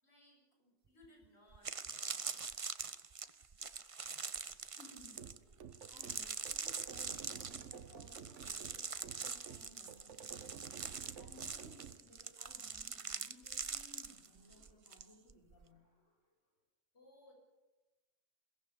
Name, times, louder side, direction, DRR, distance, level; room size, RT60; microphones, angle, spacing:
voice 1, 0.0-1.8 16.9-17.3, left 1 dB, 60° left, 0 dB, 6.3 m, -64 dB
sound 1, 1.0-1.1 1.5-15.0 15.3-15.6, right 5 dB, 35° right, 0.7 m, -43 dB
voice 2, 4.7-16.4, left 1 dB, 90° left, -2 dB, 4.4 m, -61 dB
sound 2, 5.1-12.0, right 8 dB, 75° right, 1.2 m, -53 dB
22.5 x 18.0 x 7.0 m, 1.1 s
omnidirectional pair, 1.2 m